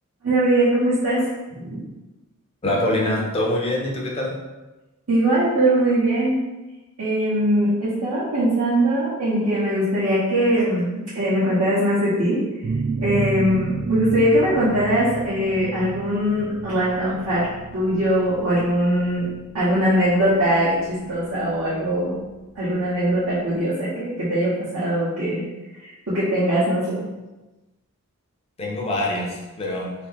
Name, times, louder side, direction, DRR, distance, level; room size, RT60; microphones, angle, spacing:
voice 1, 0.2-1.8 5.1-6.4 7.0-12.4 13.0-22.2 22.5-25.5 25.7-27.0, right 1 dB, 80° right, -13 dB, 1.1 m, -21 dB
voice 2, 2.6-4.4 28.6-29.9, left 1 dB, 25° left, -2 dB, 0.5 m, -24 dB
sound 1, 12.6-22.0, right 4 dB, 40° right, 0.3 m, -31 dB
3.0 x 2.7 x 3.5 m, 1.1 s
head